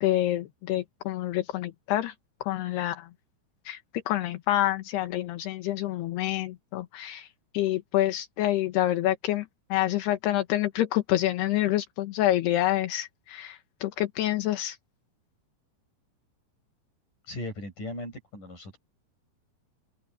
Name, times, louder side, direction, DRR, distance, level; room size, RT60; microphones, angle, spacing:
voice 1, 0.0-2.1 2.4-3.1 3.6-14.8, left 14 dB, 75° left, 3.3 m, -27 dB
voice 2, 17.3-18.8, left 1 dB, 50° left, 9.4 m, -38 dB
open air
omnidirectional pair, 4.9 m